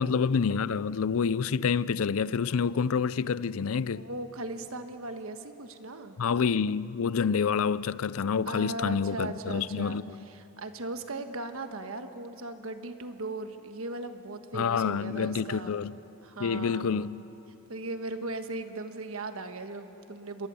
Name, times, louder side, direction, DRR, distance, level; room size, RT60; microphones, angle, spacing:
voice 1, 0.0-4.1 6.2-10.2 14.5-15.9 16.4-17.2, left 6 dB, 70° left, 0.5 m, -28 dB
voice 2, 3.9-6.2 8.5-10.0 10.3-15.8 16.2-17.0 17.7-20.5, right 2 dB, 65° right, 1.4 m, -38 dB
27.0 x 21.5 x 7.0 m
head